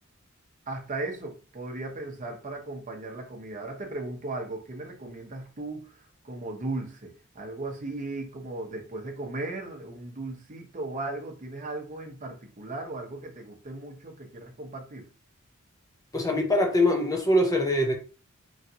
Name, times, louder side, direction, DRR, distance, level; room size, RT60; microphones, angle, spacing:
voice 1, 0.7-5.9 6.2-15.1, right 2 dB, 40° right, 0.7 m, -37 dB
voice 2, 16.1-18.0, left 1 dB, 15° left, 0.5 m, -23 dB
3.1 x 2.6 x 2.7 m
head